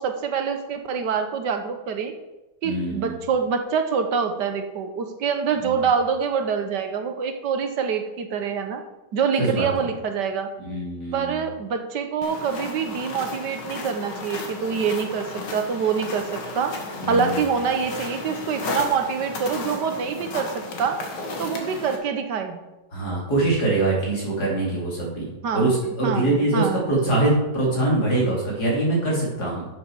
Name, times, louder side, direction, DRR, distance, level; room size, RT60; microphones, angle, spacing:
voice 1, 0.0-2.1 2.6-8.8 9.1-10.5 11.1-16.8 17.1-21.0 21.4-22.6 25.4-25.7 26.0-26.9, right 6 dB, 75° right, 6 dB, 1.7 m, -25 dB
voice 2, 2.6-3.2 5.6-5.7 9.4-9.7 10.6-11.4 17.0-17.4 22.9-29.7, right 2 dB, 65° left, -4 dB, 3.9 m, -23 dB
sound 1, 12.2-22.0, left 3 dB, 85° left, 2.2 m, -34 dB
11.5 x 7.5 x 4.7 m, 1.0 s
omnidirectional pair, 1.9 m